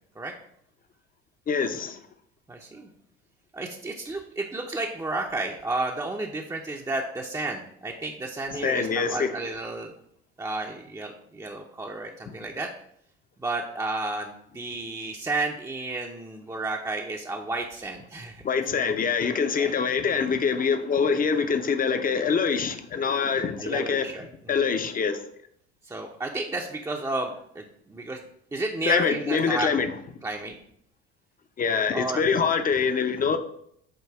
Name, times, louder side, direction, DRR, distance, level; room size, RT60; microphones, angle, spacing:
voice 1, 1.5-2.0 8.6-9.4 18.4-24.1 24.5-25.2 28.8-29.9 31.6-33.4, left 6 dB, 25° left, 0.7 m, -24 dB
voice 2, 2.5-2.9 3.5-9.9 10.4-12.7 13.4-18.4 19.6-19.7 23.6-24.3 25.9-28.2 28.5-29.7 30.2-30.6 31.9-32.2, right 2 dB, 10° right, 0.7 m, -32 dB
7.6 x 2.6 x 4.7 m
hypercardioid pair, 70°, 33 cm